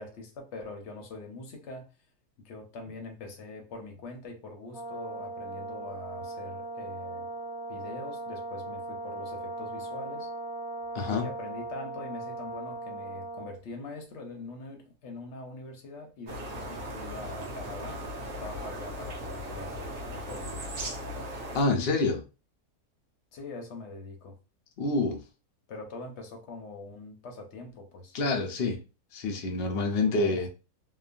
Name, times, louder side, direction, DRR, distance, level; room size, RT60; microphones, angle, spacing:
voice 1, 0.0-1.9 2.4-7.3 7.7-10.3 11.1-18.0 18.4-20.6 23.3-24.4 25.7-28.2 30.0-30.5, left 2 dB, 60° left, 3 dB, 0.8 m, -43 dB
Brass instrument, 4.7-13.6, right 2 dB, 35° right, 0.3 m, -38 dB
voice 2, 10.9-11.3 21.5-22.2 24.8-25.2 28.1-28.8 29.1-30.5, left 3 dB, 80° left, 2 dB, 0.5 m, -27 dB
sound 1, 16.3-21.6, equal, 60° right, 1.1 m, -38 dB
3.0 x 2.2 x 2.4 m, 0.32 s
omnidirectional pair, 1.7 m